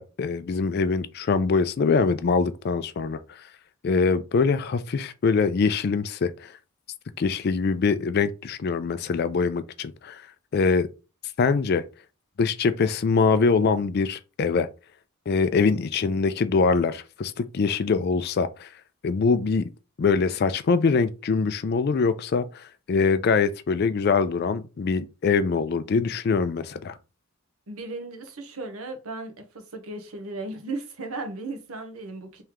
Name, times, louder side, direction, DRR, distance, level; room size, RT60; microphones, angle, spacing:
voice 1, 0.0-3.5 3.8-6.5 7.2-10.2 10.5-10.9 11.4-11.8 12.4-14.7 15.3-18.7 19.0-19.7 20.0-27.0, left 4 dB, 45° left, 0.3 m, -23 dB
voice 2, 27.7-32.4, right 2 dB, 80° right, 0.9 m, -36 dB
3.2 x 2.9 x 3.6 m
head